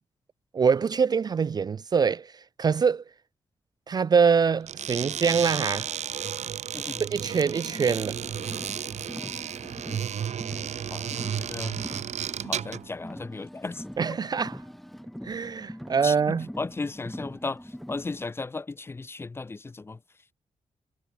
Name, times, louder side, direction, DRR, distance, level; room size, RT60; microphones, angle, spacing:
voice 1, 0.5-2.3 2.6-3.0 3.9-5.9 7.0-8.2 14.0-14.6 15.2-16.5, right 6 dB, 35° right, 0.4 m, -24 dB
sound 1, 4.6-12.9, right 9 dB, 75° right, 2.8 m, -33 dB
Car, 7.1-18.2, equal, ahead, 4.3 m, -43 dB
voice 2, 10.9-11.8 12.4-13.8 16.0-17.6 17.9-20.0, left 3 dB, 20° left, 0.5 m, -35 dB
wide cardioid pair, 150°, 12 cm